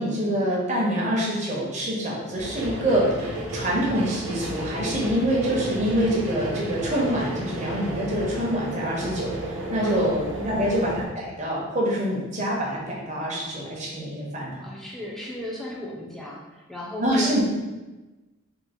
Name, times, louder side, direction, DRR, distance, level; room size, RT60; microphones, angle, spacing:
voice 1, 0.0-9.3 9.7-14.6 17.0-17.4, equal, 35° right, -4 dB, 0.9 m, -25 dB
sound 1, 2.4-11.1, right 1 dB, 75° right, 0.8 m, -32 dB
voice 2, 10.3-10.7 14.6-17.3, left 1 dB, ahead, -4 dB, 0.5 m, -35 dB
3.6 x 2.4 x 4.3 m, 1.2 s
head